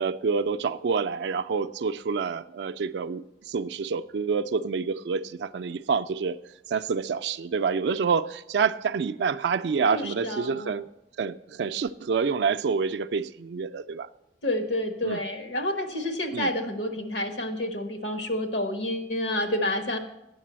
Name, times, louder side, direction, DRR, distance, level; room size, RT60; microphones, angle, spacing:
voice 1, 0.0-6.4 6.7-10.9 11.2-14.1 15.0-15.2 16.3-16.5, right 5 dB, 65° right, 0.4 m, -27 dB
voice 2, 9.9-10.7 14.4-20.0, left 1 dB, 75° left, 1.2 m, -29 dB
8.6 x 6.7 x 7.4 m
head